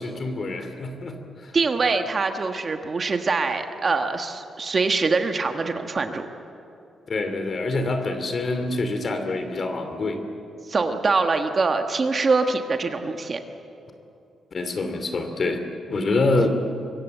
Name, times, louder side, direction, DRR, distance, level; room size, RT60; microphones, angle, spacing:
voice 1, 0.0-1.5 7.1-10.2 14.5-15.6 15.9-16.5, left 2 dB, 40° left, 7 dB, 2.8 m, -26 dB
voice 2, 1.5-6.3 10.7-13.4, right 4 dB, 30° right, 6 dB, 1.4 m, -24 dB
24.5 x 23.0 x 8.0 m, 2.8 s
wide cardioid pair, 155°, 0 cm